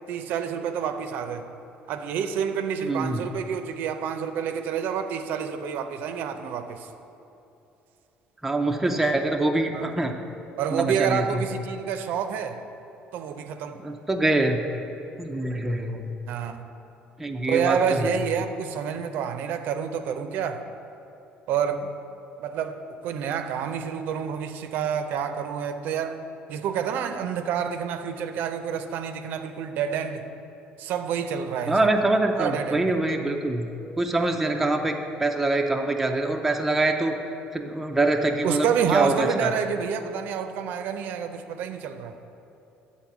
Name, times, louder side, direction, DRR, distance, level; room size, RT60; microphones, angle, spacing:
voice 1, 0.1-1.4 1.9-6.9 9.7-9.9 10.6-12.6 13.1-13.8 16.3-16.6 17.5-20.6 21.5-21.9 22.4-22.8 23.0-26.2 26.5-30.2 30.8-31.9 32.3-32.9 38.4-42.1, right 7 dB, 65° right, 8 dB, 0.5 m, -28 dB
voice 2, 2.8-3.2 8.4-10.1 10.7-11.4 13.8-14.6 15.2-16.1 17.2-18.2 31.7-33.7 34.0-37.2 37.5-39.5, right 2 dB, 5° right, 2 dB, 0.5 m, -24 dB
9.4 x 4.1 x 7.2 m, 2.9 s
cardioid pair, 150°, 3 cm